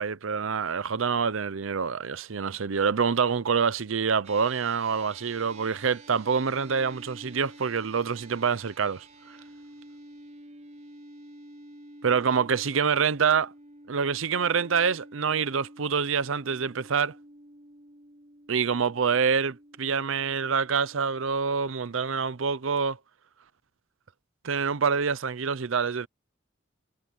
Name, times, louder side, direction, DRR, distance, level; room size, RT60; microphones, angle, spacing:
voice 1, 0.0-9.1 12.0-13.5 13.9-17.1 18.5-23.0 24.4-26.1, right 6 dB, 75° right, 0.6 m, -26 dB
sound 1, 4.2-22.8, right 1 dB, 35° right, 5.7 m, -50 dB
head